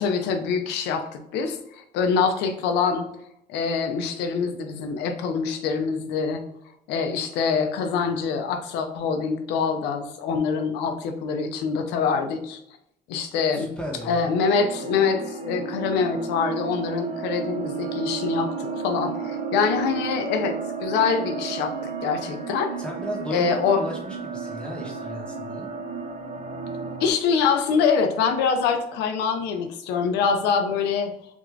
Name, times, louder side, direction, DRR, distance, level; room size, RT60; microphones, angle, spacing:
voice 1, 0.0-1.6 1.9-3.1 3.5-6.4 6.9-12.6 13.1-13.7 14.0-21.7 22.0-22.7 23.3-23.8 27.0-31.1, left 5 dB, 90° left, 6 dB, 0.6 m, -24 dB
voice 2, 13.5-14.3 22.8-25.7, equal, 5° left, -2 dB, 0.9 m, -35 dB
sound 1, 14.4-27.1, right 5 dB, 40° right, 0.5 m, -33 dB
3.5 x 2.5 x 3.1 m, 0.79 s
cardioid pair, 110°, 17 cm